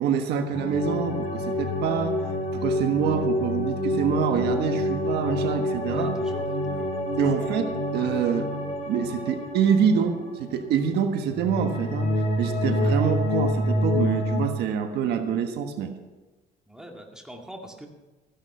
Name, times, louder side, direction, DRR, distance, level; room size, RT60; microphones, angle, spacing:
voice 1, 0.0-6.1 7.2-8.5 8.9-15.9, right 7 dB, 75° right, 6 dB, 1.4 m, -26 dB
sound 1, 0.5-11.0 11.3-14.5, left 1 dB, 40° left, 3.5 m, -27 dB
voice 2, 5.8-6.9 7.4-7.6 16.7-17.9, equal, 5° right, 1 dB, 2.2 m, -42 dB
15.0 x 11.0 x 5.6 m, 1.2 s
cardioid pair, 110°, 17 cm